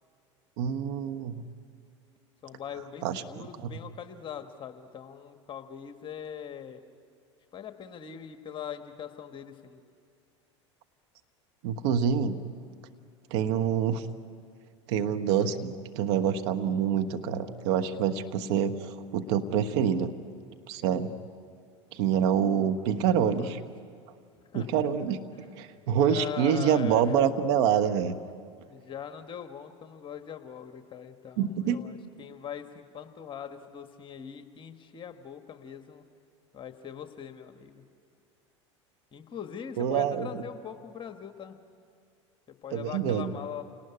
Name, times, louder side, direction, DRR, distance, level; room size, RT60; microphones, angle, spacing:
voice 1, 0.6-1.4 3.0-3.2 3.6-3.7 11.6-12.4 13.3-14.1 14.9-20.1 20.7-21.1 21.9-23.6 24.5-28.1 31.4-31.8 39.8-40.4 42.7-43.3, right 8 dB, 65° right, 8 dB, 1.3 m, -26 dB
voice 2, 2.4-6.8 7.5-9.8 23.4-23.6 24.5-24.7 25.3-27.2 28.7-36.0 36.5-37.8 39.1-41.6 42.5-43.6, left 8 dB, 35° left, 7 dB, 1.5 m, -41 dB
28.5 x 19.0 x 9.6 m, 2.3 s
hypercardioid pair, 85°, 15 cm